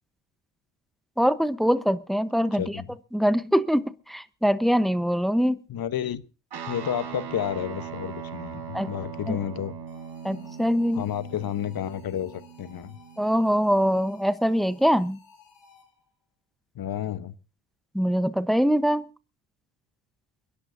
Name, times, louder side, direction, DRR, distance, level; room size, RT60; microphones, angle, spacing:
voice 1, 1.2-2.8 3.1-5.6 8.7-8.9 9.3-9.4 10.2-11.0 13.2-15.2 17.9-19.1, equal, ahead, 0.9 m, -23 dB
voice 2, 2.5-2.9 5.7-6.2 6.7-9.7 10.9-13.0 16.7-17.4, left 10 dB, 55° left, 1.1 m, -31 dB
Guitar, 6.5-14.1, right 7 dB, 60° right, 4.5 m, -40 dB
sound 1, 9.9-16.1, left 5 dB, 75° left, 6.3 m, -56 dB
30.0 x 11.0 x 2.6 m
cardioid pair, 85°, 45 cm